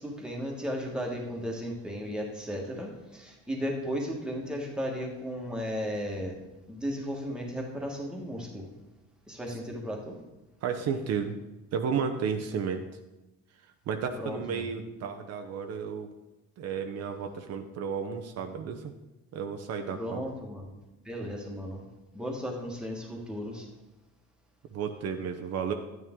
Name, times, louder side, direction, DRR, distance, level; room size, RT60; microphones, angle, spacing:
voice 1, 0.0-6.4 6.7-8.7 9.3-10.1 14.2-14.7 19.9-20.7 21.0-21.8 22.1-23.7, equal, 5° right, -1 dB, 1.5 m, -35 dB
voice 2, 10.6-11.3 11.7-12.8 13.9-16.1 16.6-18.9 19.3-20.3 24.7-25.7, right 6 dB, 60° right, 6 dB, 0.8 m, -32 dB
12.0 x 9.5 x 3.7 m, 1.0 s
cardioid pair, 175°, 29 cm